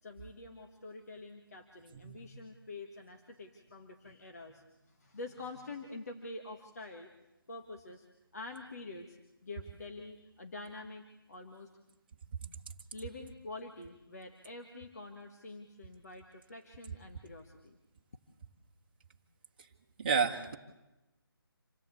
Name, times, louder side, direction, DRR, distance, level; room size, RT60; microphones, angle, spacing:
voice 1, 0.0-7.1 7.5-8.0 8.3-9.2 9.4-11.7 12.9-17.8, left 2 dB, 40° left, 3 dB, 1.6 m, -47 dB
voice 2, 20.0-20.6, right 5 dB, 25° right, 1 dB, 1.5 m, -30 dB
27.0 x 16.5 x 8.5 m, 1.0 s
figure-of-eight pair, 175°, 13 cm